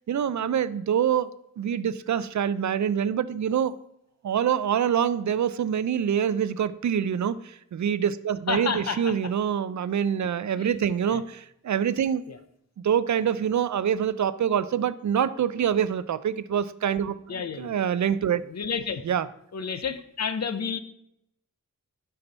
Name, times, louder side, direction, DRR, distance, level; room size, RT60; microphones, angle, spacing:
voice 1, 0.1-3.7 4.2-7.4 7.7-12.2 12.8-17.2 17.6-18.4 19.1-19.3, right 8 dB, 65° right, 15 dB, 0.4 m, -25 dB
voice 2, 8.5-9.2 10.6-10.7 11.1-11.2 12.3-12.4 17.3-17.7 18.5-19.0 19.5-20.8, left 6 dB, 60° left, 10 dB, 0.7 m, -30 dB
6.7 x 5.8 x 4.0 m, 0.75 s
cardioid pair, 60°, 31 cm